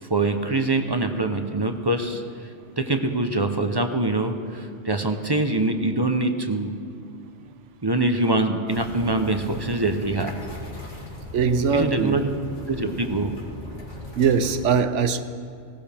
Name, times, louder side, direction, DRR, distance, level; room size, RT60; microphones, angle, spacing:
voice 1, 0.1-2.2 2.8-6.7 7.8-10.3 11.7-12.3 12.7-13.3, right 2 dB, 25° right, 6 dB, 0.7 m, -24 dB
sound 1, 8.7-14.6, left 1 dB, 85° left, 2.9 m, -38 dB
voice 2, 11.3-12.2 14.1-15.2, right 6 dB, 90° right, 10 dB, 1.1 m, -21 dB
19.0 x 17.5 x 3.5 m, 2.3 s
omnidirectional pair, 1.2 m